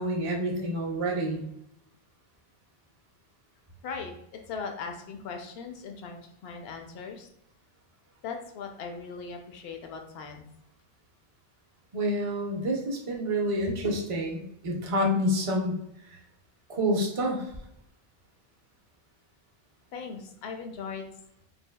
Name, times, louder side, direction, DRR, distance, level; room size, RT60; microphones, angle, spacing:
voice 1, 0.0-1.4 11.9-15.8 16.1-16.2 16.7-17.5, equal, 40° right, 1 dB, 0.6 m, -28 dB
voice 2, 3.8-7.3 8.2-10.4 19.9-21.1, left 5 dB, 80° left, 4 dB, 0.8 m, -39 dB
3.3 x 2.4 x 2.2 m, 0.76 s
omnidirectional pair, 1.0 m